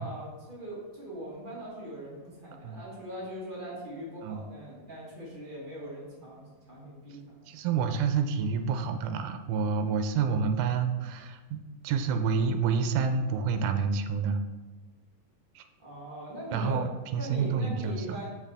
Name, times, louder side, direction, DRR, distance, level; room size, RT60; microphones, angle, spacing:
voice 1, 0.0-7.2 15.8-18.3, equal, 35° right, -7 dB, 0.8 m, -41 dB
voice 2, 7.5-11.6 11.8-14.4 15.6-15.7 16.5-18.2, right 5 dB, 85° right, 7 dB, 2.0 m, -28 dB
6.3 x 5.8 x 3.4 m, 1.3 s
omnidirectional pair, 3.6 m